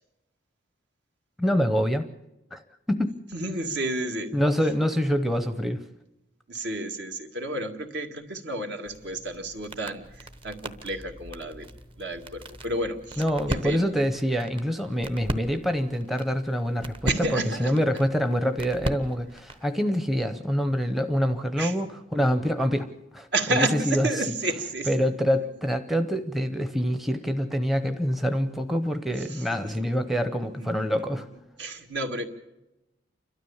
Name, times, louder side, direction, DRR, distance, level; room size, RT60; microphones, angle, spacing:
voice 1, 1.4-2.1 2.5-2.6 2.9-3.1 4.3-5.8 13.2-24.1 24.9-31.3, equal, ahead, 9 dB, 0.7 m, -26 dB
voice 2, 3.3-4.4 6.5-11.7 12.0-13.9 17.0-17.7 21.6-21.8 23.3-24.9 29.1-30.0 30.4-31.2 31.6-32.2, right 2 dB, 60° right, 4 dB, 2.1 m, -31 dB
sound 1, 8.9-19.7, equal, 25° right, 1.0 m, -38 dB
30.0 x 13.0 x 7.2 m, 0.95 s
head